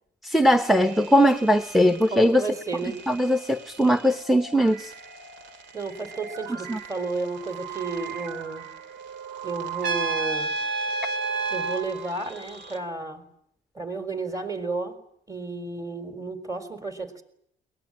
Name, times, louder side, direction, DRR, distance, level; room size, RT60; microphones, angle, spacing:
voice 1, 0.2-2.5 3.1-4.9 6.7-6.8, equal, ahead, 10 dB, 0.9 m, -20 dB
sound 1, 0.6-12.8, right 7 dB, 90° right, 2.5 m, -41 dB
voice 2, 2.1-3.0 5.7-8.7 9.4-10.5 11.5-13.2 13.8-14.9 15.3-17.2, right 3 dB, 20° right, 9 dB, 4.0 m, -32 dB
Trumpet, 9.8-11.8, right 3 dB, 70° right, 3.5 m, -28 dB
22.0 x 19.5 x 9.8 m, 0.73 s
cardioid pair, 105°, 18 cm